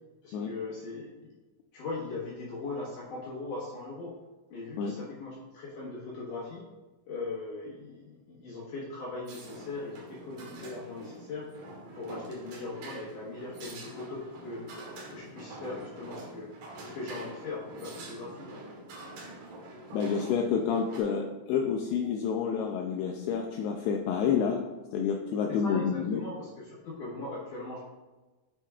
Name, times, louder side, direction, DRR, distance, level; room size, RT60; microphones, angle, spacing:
voice 1, 0.2-1.3 1.7-4.1 4.5-6.6 7.1-11.5 11.9-14.7 14.9-16.5 16.8-18.6 25.6-27.8, left 3 dB, 65° left, -6 dB, 2.5 m, -39 dB
sound 1, 9.3-21.0, right 2 dB, 65° right, 2.5 m, -46 dB
voice 2, 19.9-24.6 24.9-26.2, left 6 dB, 80° left, 2 dB, 2.5 m, -29 dB
9.0 x 5.8 x 2.4 m, 1.1 s
omnidirectional pair, 4.7 m